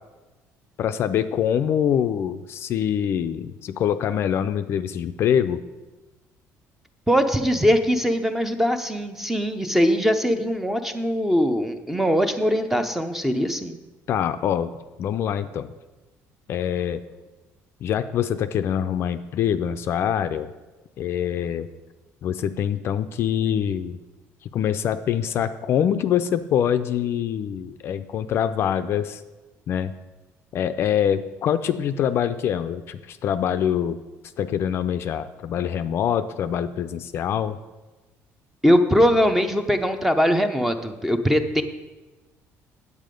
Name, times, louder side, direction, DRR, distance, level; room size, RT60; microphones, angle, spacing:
voice 1, 0.8-5.6 14.1-14.7 15.0-15.7 16.5-17.0 17.8-20.5 21.0-21.7 22.2-24.0 24.5-29.2 29.7-30.0 30.5-34.0 34.4-37.6, left 9 dB, 50° left, 10 dB, 0.4 m, -24 dB
voice 2, 7.1-13.8 38.6-41.6, equal, 5° right, 8 dB, 0.6 m, -21 dB
9.4 x 8.3 x 5.1 m, 1.2 s
cardioid pair, 150°, 5 cm